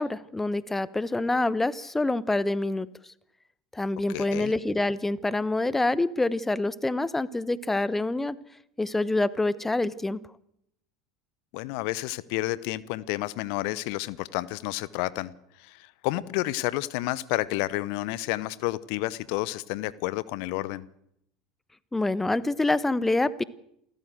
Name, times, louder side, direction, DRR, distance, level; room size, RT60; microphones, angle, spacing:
voice 1, 0.0-2.9 3.7-8.4 8.8-10.2 21.9-23.4, left 2 dB, 10° left, 19 dB, 1.0 m, -26 dB
voice 2, 4.1-4.5 11.5-15.3 15.6-20.8, left 18 dB, 60° left, 19 dB, 0.9 m, -30 dB
28.5 x 14.0 x 7.8 m, 0.75 s
figure-of-eight pair, 70°, 3 cm